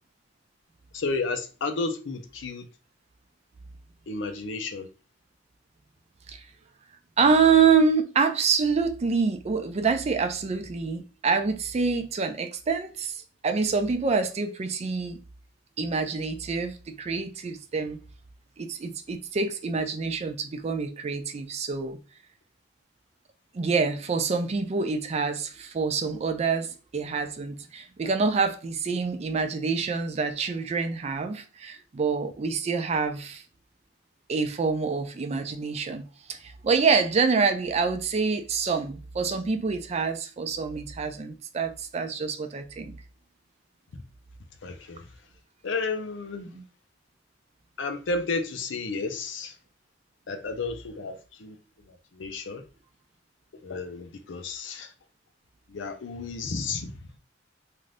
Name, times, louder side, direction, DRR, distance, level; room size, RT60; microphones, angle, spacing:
voice 1, 0.9-2.7 4.1-4.9 44.6-45.1 45.6-46.5 47.8-49.6 50.3-52.6 53.5-54.9 55.7-57.2, left 3 dB, 80° left, 0.5 m, -32 dB
voice 2, 7.2-15.2 15.8-18.0 18.6-22.0 23.5-33.4 34.3-36.0 36.3-42.9 46.5-46.6, right 5 dB, 35° right, 0.4 m, -26 dB
2.6 x 2.5 x 3.2 m
head